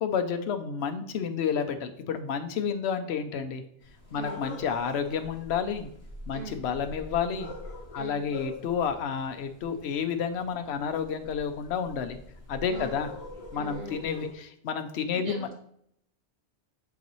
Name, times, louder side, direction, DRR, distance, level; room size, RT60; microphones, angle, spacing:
voice 1, 0.0-3.6 4.1-5.9 6.3-7.5 7.9-12.2 12.5-13.1 13.5-15.5, left 7 dB, 70° left, 8 dB, 0.9 m, -30 dB
sound 1, 3.8-14.3, left 2 dB, 25° left, 2.1 m, -44 dB
voice 2, 6.3-6.6 7.9-8.2 12.7-12.9 13.5-14.0 15.1-15.5, right 4 dB, 60° right, -1 dB, 1.7 m, -41 dB
9.6 x 4.1 x 3.1 m, 0.69 s
omnidirectional pair, 1.2 m